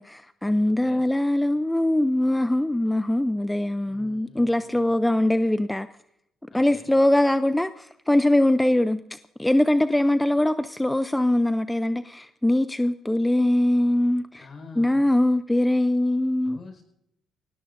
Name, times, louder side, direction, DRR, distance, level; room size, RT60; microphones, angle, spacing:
voice 1, 0.0-5.9 6.5-14.5 14.8-16.6, left 1 dB, 10° left, 11 dB, 0.5 m, -22 dB
voice 2, 0.7-1.0 3.9-5.0 6.5-6.9 14.4-15.1 16.4-16.8, left 4 dB, 50° left, 5 dB, 5.0 m, -46 dB
24.0 x 18.0 x 2.6 m, 0.80 s
cardioid pair, 90°, 0 cm